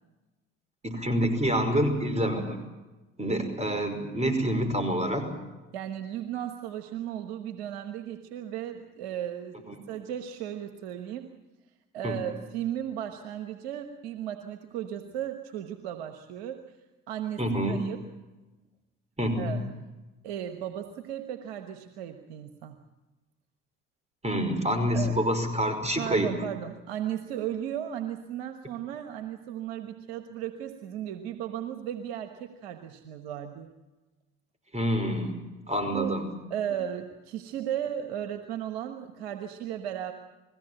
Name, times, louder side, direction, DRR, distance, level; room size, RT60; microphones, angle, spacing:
voice 1, 0.8-2.6 3.2-5.3 9.7-9.8 12.0-12.2 17.4-17.8 19.2-19.6 24.2-26.3 34.7-35.3 35.7-36.3, equal, 20° right, 7 dB, 5.3 m, -27 dB
voice 2, 5.7-9.5 9.9-11.3 11.9-16.6 17.1-17.4 17.7-18.0 19.4-19.6 20.2-22.7 24.9-25.2 26.0-33.7 35.9-36.2 36.5-40.1, right 10 dB, 90° right, 6 dB, 1.3 m, -35 dB
21.5 x 16.5 x 8.9 m, 1.1 s
hypercardioid pair, 55°, 31 cm